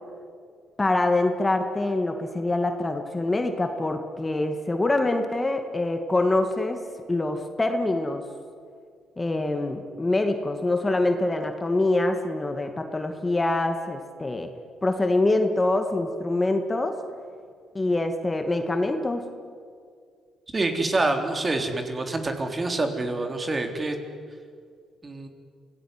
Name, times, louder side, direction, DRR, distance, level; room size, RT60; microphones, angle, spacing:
voice 1, 0.8-6.8 7.1-8.2 9.2-14.5 14.8-17.0 17.7-19.2, left 2 dB, 20° left, 6 dB, 2.3 m, -25 dB
voice 2, 20.5-24.0 25.0-25.3, right 2 dB, 30° right, 5 dB, 3.5 m, -26 dB
27.0 x 18.0 x 9.7 m, 2.1 s
cardioid pair, 90°, 0 cm